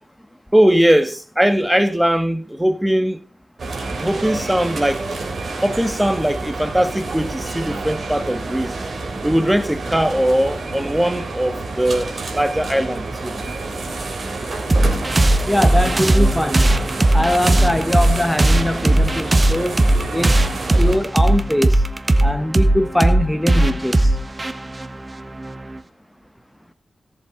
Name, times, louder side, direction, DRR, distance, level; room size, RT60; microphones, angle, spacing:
voice 1, 0.5-3.3 4.0-5.1 5.6-8.8 9.2-13.4, equal, 10° right, 1.7 m, -20 dB
sound 1, 3.6-21.0, right 3 dB, 70° right, 3.2 m, -29 dB
sound 2, 14.7-25.8, right 1 dB, 35° right, 1.2 m, -18 dB
voice 2, 15.4-16.6 17.1-19.8 20.1-20.5 20.7-21.8 22.2-24.2, left 1 dB, 5° left, 1.3 m, -21 dB
17.0 x 7.8 x 3.8 m
cardioid pair, 60°, 0 cm